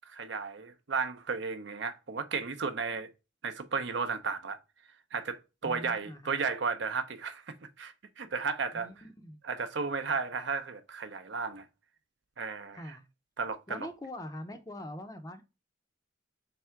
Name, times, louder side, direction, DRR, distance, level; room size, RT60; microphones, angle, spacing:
voice 1, 0.1-3.1 3.4-4.6 5.1-8.9 9.4-11.6 12.4-13.0 13.4-13.9, right 5 dB, 60° right, 0.6 m, -34 dB
voice 2, 5.6-6.5 8.7-9.4 12.7-13.1 13.7-15.4, left 1 dB, 20° left, 0.5 m, -43 dB
3.5 x 3.4 x 4.4 m
head